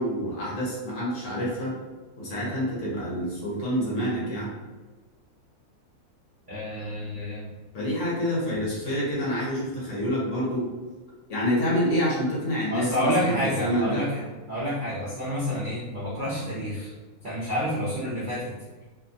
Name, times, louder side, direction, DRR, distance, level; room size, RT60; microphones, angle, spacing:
voice 1, 0.0-1.8 2.2-4.5 7.7-10.7 11.3-14.0, equal, 55° left, -7 dB, 1.1 m, -27 dB
voice 2, 6.5-7.5 8.7-8.8 12.7-16.9 17.2-18.5, equal, 55° right, -9 dB, 0.5 m, -29 dB
2.8 x 2.1 x 2.6 m, 1.3 s
omnidirectional pair, 1.6 m